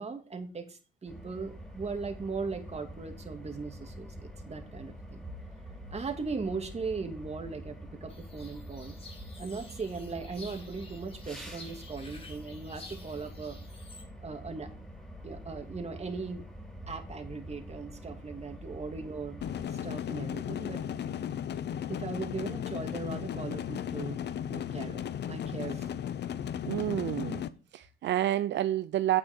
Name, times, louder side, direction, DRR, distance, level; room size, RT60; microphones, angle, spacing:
voice 1, 0.0-5.2 5.9-9.0 9.4-13.6 14.2-14.7 15.2-16.4 16.9-19.4 19.7-20.8 21.9-24.2 24.5-25.9, right 4 dB, 30° right, 2.5 m, -38 dB
sound 1, 1.1-19.6, equal, 5° left, 4.5 m, -46 dB
sound 2, 8.1-14.0, left 3 dB, 30° left, 3.2 m, -52 dB
sound 3, 19.4-27.5, left 9 dB, 60° left, 0.8 m, -35 dB
voice 2, 26.7-27.4 27.7-29.2, right 13 dB, 65° right, 0.5 m, -29 dB
9.7 x 8.1 x 4.5 m
cardioid pair, 90°, 20 cm